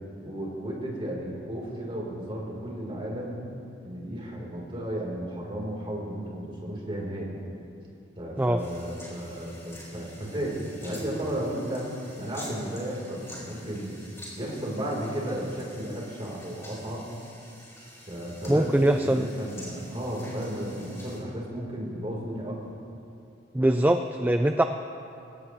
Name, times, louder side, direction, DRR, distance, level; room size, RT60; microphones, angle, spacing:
voice 1, 0.2-3.4 3.8-7.4 8.2-11.9 12.1-13.9 14.3-17.1 18.1-22.6, right 1 dB, 30° right, -3 dB, 3.7 m, -33 dB
sound 1, 8.6-21.2, left 1 dB, 15° left, 4.7 m, -48 dB
voice 2, 18.5-19.3 23.5-24.6, right 1 dB, 10° right, 6 dB, 0.4 m, -22 dB
23.0 x 17.5 x 3.1 m, 2.7 s
head